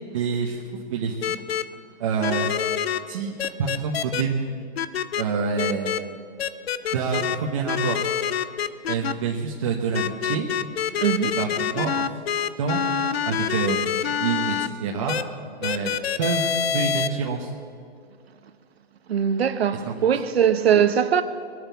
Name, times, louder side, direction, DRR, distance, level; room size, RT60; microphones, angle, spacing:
voice 1, 0.1-0.6 0.9-1.4 2.0-2.6 3.1-4.5 5.2-6.1 6.9-8.0 8.9-10.5 11.4-12.1 12.6-12.8 13.2-15.2 15.6-15.9 16.2-17.5 19.9-20.0, right 5 dB, 30° right, 1.1 m, -27 dB
sound 1, 1.2-1.6 2.2-3.0 3.4-4.2 4.8-5.2 5.6-6.0 6.4-7.4 7.7-9.1 9.9-14.7 15.1-15.2 15.6-17.1, left 8 dB, 75° left, 0.8 m, -26 dB
voice 2, 11.0-11.4 19.1-21.2, right 8 dB, 75° right, 1.2 m, -21 dB
21.5 x 9.3 x 7.1 m
hypercardioid pair, 170°, 31 cm